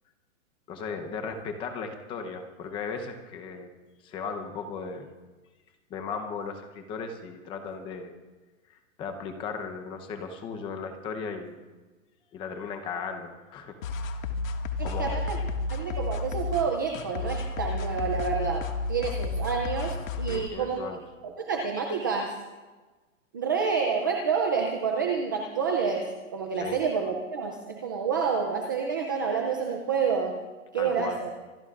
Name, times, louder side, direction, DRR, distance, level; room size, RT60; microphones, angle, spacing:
voice 1, 0.7-3.7 4.0-5.1 5.9-8.1 9.0-11.6 12.3-13.8 14.8-15.2 20.3-21.0 26.6-26.8 30.7-31.2, left 5 dB, 15° left, 6 dB, 0.7 m, -36 dB
sound 1, 13.8-20.5, left 3 dB, 80° left, 1.9 m, -32 dB
voice 2, 14.8-15.4 15.7-20.8 21.2-22.3 23.3-30.4 30.7-31.3, right 5 dB, 15° right, 2 dB, 0.4 m, -28 dB
26.0 x 20.5 x 2.5 m, 1.3 s
hypercardioid pair, 170°, 40 cm